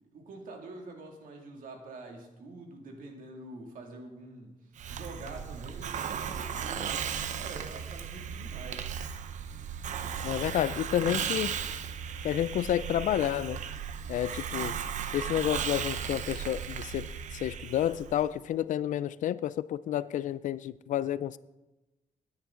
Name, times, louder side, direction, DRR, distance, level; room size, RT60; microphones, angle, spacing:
voice 1, 0.1-6.9 7.4-8.9, right 2 dB, 80° right, 2.3 m, -46 dB
Hiss, 4.8-18.3, right 8 dB, 60° right, 0.7 m, -36 dB
voice 2, 10.2-11.5 12.2-13.6 14.1-14.8 15.1-21.4, left 11 dB, 65° left, 0.4 m, -30 dB
18.5 x 9.8 x 3.8 m
wide cardioid pair, 175°, 14 cm